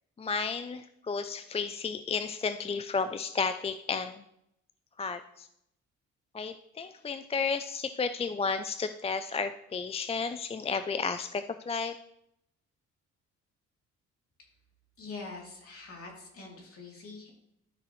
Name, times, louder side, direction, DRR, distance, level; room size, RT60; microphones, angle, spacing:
voice 1, 0.2-4.2 5.0-5.5 6.3-11.9, left 5 dB, 20° left, 10 dB, 0.4 m, -32 dB
voice 2, 15.0-17.3, left 3 dB, 50° left, -1 dB, 2.8 m, -44 dB
12.5 x 6.1 x 3.1 m, 0.79 s
cardioid pair, 90°, 30 cm